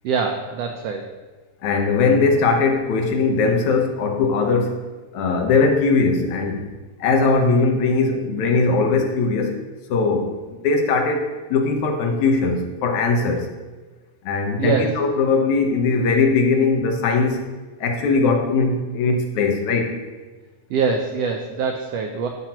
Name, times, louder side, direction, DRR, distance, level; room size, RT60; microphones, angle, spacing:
voice 1, 0.0-1.1 14.6-15.0 20.7-22.3, right 5 dB, 80° right, 4 dB, 1.4 m, -24 dB
voice 2, 1.6-4.8 5.1-6.6 7.0-9.5 9.9-13.5 14.2-17.4 17.8-20.0, left 4 dB, 75° left, 3 dB, 2.3 m, -20 dB
13.5 x 5.7 x 2.9 m, 1.3 s
omnidirectional pair, 3.5 m